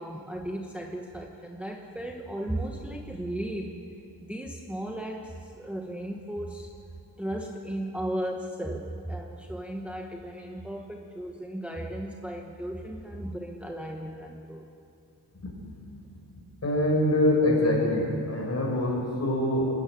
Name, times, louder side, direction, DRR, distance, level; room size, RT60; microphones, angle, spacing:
voice 1, 0.0-3.7 4.2-6.7 7.2-14.6, right 1 dB, 5° right, 1 dB, 1.2 m, -35 dB
voice 2, 16.6-19.6, left 1 dB, 40° left, -2 dB, 5.8 m, -24 dB
23.0 x 13.0 x 9.3 m, 2.7 s
wide cardioid pair, 125°, 40 cm